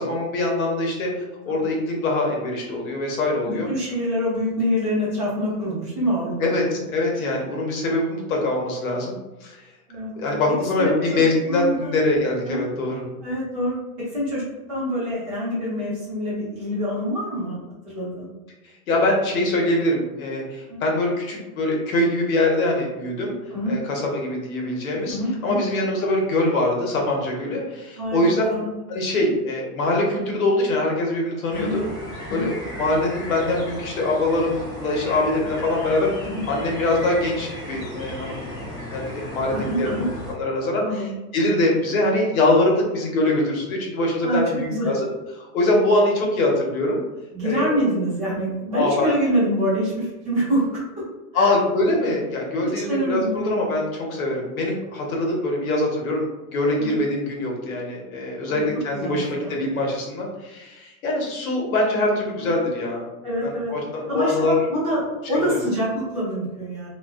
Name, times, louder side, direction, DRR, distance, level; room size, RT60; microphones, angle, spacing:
voice 1, 0.0-3.7 6.4-9.6 10.1-13.0 18.6-23.4 23.7-25.2 25.4-28.4 28.9-31.8 32.3-38.4 38.9-39.9 40.3-41.1 41.3-45.1 45.3-47.0 47.4-47.8 48.7-49.1 51.3-63.1 63.4-64.5 65.3-65.6, left 2 dB, 65° left, -1 dB, 0.9 m, -23 dB
voice 2, 3.4-6.8 7.1-7.2 9.9-10.4 10.8-11.9 12.5-12.6 13.2-13.8 14.1-17.6 17.8-18.3 20.7-20.8 23.5-23.7 25.1-25.6 28.0-28.2 28.5-28.7 31.5-31.8 32.3-32.4 36.2-36.4 39.5-40.1 40.8-41.1 44.2-44.9 47.3-50.8 51.3-51.5 52.6-53.8 56.8-57.0 58.5-58.6 58.9-59.6 62.4-62.5 63.2-63.7 64.1-64.4 64.7-65.0 65.3-66.9, equal, 25° right, -9 dB, 0.7 m, -26 dB
sound 1, 31.5-40.3, left 1 dB, 15° left, 0.5 m, -35 dB
2.4 x 2.3 x 2.3 m, 1.1 s
supercardioid pair, 180°, 46 cm